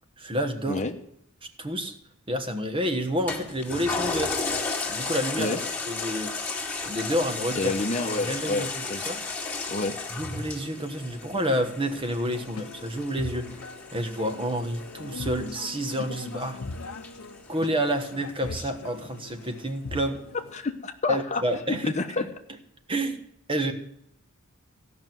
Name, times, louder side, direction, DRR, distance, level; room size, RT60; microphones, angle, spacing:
voice 1, 0.2-0.8 1.6-2.0 2.3-4.4 4.9-5.6 5.8-6.3 6.8-7.7 8.1-9.2 10.1-13.5 13.9-16.6 17.5-20.2 21.1-22.3 22.9-23.2 23.5-23.7, equal, 25° right, 6 dB, 1.2 m, -29 dB
Toilet flush, 3.3-18.1 18.6-18.7, left 4 dB, 10° left, 2.2 m, -34 dB
voice 2, 7.6-9.0 9.7-9.9 20.5-21.4 21.7-22.2, left 2 dB, 30° left, 6 dB, 1.0 m, -28 dB
sound 1, 12.3-20.5, left 3 dB, 70° left, 0.8 m, -40 dB
16.0 x 6.0 x 9.3 m, 0.73 s
head